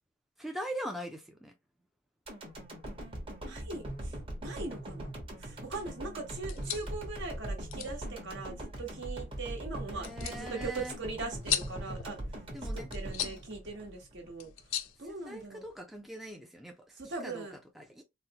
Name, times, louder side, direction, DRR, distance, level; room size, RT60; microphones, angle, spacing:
voice 1, 0.4-1.5 9.9-11.0 12.5-12.9 15.0-18.0, right 1 dB, ahead, 0.3 m, -42 dB
sound 1, 2.3-14.5 14.9-15.0, right 1 dB, 25° right, 1.0 m, -41 dB
voice 2, 3.5-5.1 5.4-12.2 12.7-15.6 17.0-17.6, right 3 dB, 60° right, 1.1 m, -41 dB
sound 2, 6.3-15.8, left 11 dB, 75° left, 0.4 m, -41 dB
4.0 x 2.0 x 2.8 m
head